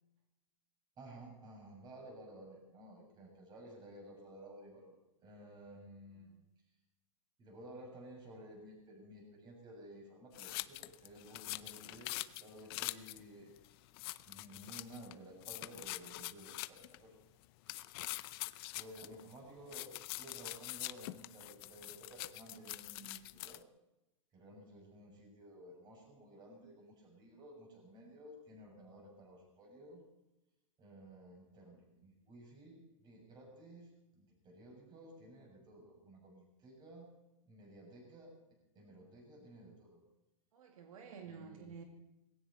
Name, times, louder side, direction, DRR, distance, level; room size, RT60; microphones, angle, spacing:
voice 1, 1.0-6.4 7.4-13.5 14.3-17.1 18.0-18.2 18.7-23.6 24.3-30.0 30.8-37.1 37.5-38.3 38.8-40.0 41.2-41.7, right 1 dB, 25° right, 0 dB, 7.2 m, -54 dB
sound 1, 10.3-13.2 13.6-13.7 13.9-15.1 15.4-17.0 17.7-19.4 19.7-23.6, left 21 dB, 45° left, 0.6 m, -44 dB
voice 2, 40.5-41.8, right 6 dB, 80° right, 3 dB, 2.5 m, -52 dB
19.5 x 17.0 x 4.3 m, 0.95 s
supercardioid pair, 140°, 17 cm